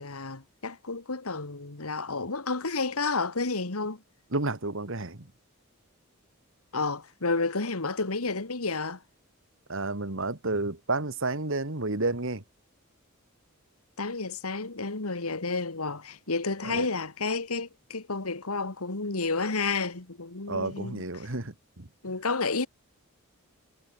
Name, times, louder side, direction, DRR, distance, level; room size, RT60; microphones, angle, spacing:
voice 1, 0.0-4.0 6.7-9.0 14.0-21.0 22.0-22.7, left 3 dB, 80° left, 2.0 m, -31 dB
voice 2, 4.3-5.3 9.7-12.4 16.6-16.9 20.5-21.9, right 2 dB, 60° right, 2.2 m, -31 dB
head